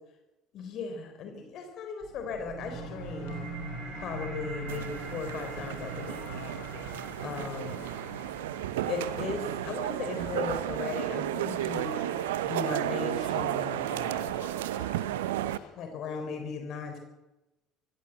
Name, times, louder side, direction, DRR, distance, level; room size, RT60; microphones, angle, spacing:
voice 1, 0.5-3.4 4.0-6.3 7.2-7.9 8.9-12.1 12.4-14.4 15.8-17.0, left 5 dB, 50° left, 5 dB, 3.8 m, -37 dB
sound 1, 2.0-13.0, right 2 dB, 40° right, 7.9 m, -43 dB
sound 2, 2.6-15.7, left 8 dB, 65° left, 3.7 m, -50 dB
sound 3, 4.7-15.6, right 13 dB, 70° right, 0.9 m, -33 dB
24.5 x 16.5 x 7.9 m, 1.0 s
figure-of-eight pair, 60°, 0 cm